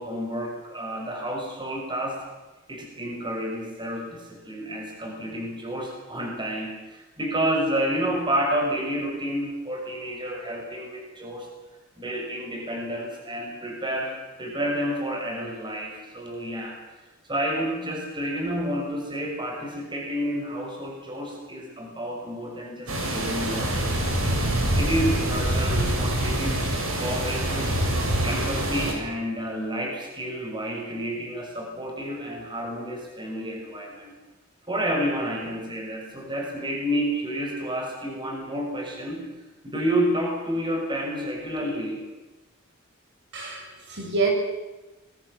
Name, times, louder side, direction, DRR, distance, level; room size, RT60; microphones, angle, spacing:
voice 1, 0.0-2.2 2.7-11.5 12.0-16.7 17.3-26.6 27.0-27.8 28.2-34.1 34.7-39.2 39.6-42.0, equal, 25° right, 1 dB, 6.2 m, -30 dB
sound 1, 22.9-28.9, right 1 dB, 80° right, 7.3 m, -25 dB
voice 2, 43.3-44.3, right 4 dB, 60° right, 2 dB, 6.9 m, -27 dB
26.5 x 22.5 x 7.4 m, 1.1 s
head